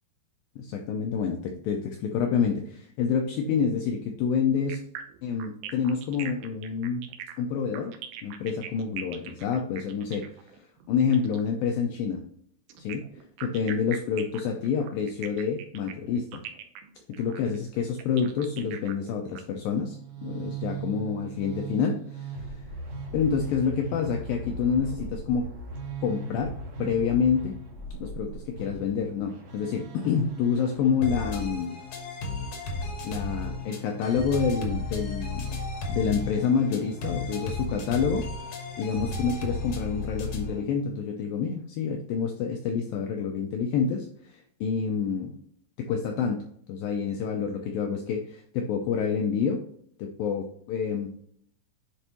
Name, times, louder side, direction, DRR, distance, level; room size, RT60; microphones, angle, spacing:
voice 1, 0.6-4.8 5.2-7.0 7.4-7.9 8.2-12.2 12.8-13.1 13.4-16.4 17.1-22.6 23.1-25.5 26.0-26.5 26.8-27.5 28.0-31.7 33.0-35.6 35.9-38.3 38.8-45.3 45.8-46.4 46.7-49.6 50.0-51.1, left 6 dB, 85° left, 3 dB, 2.0 m, -28 dB
sound 1, 4.7-11.5 12.7-19.4, right 10 dB, 75° right, 2.5 m, -41 dB
sound 2, 19.8-31.6, right 3 dB, 55° right, 2.0 m, -39 dB
sound 3, 31.0-40.6, left 2 dB, 65° left, 1.6 m, -34 dB
10.0 x 4.2 x 3.0 m, 0.66 s
omnidirectional pair, 4.8 m